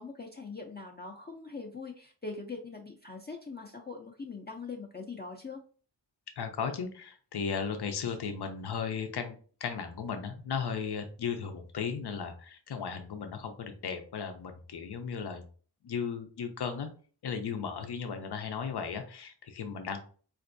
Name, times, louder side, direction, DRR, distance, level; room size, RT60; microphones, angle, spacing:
voice 1, 0.0-5.6, left 4 dB, 25° left, -1 dB, 0.5 m, -42 dB
voice 2, 6.4-15.4 15.8-16.9 17.2-20.0, left 6 dB, 70° left, 6 dB, 0.6 m, -36 dB
4.4 x 2.6 x 2.5 m, 0.41 s
wide cardioid pair, 95°, 41 cm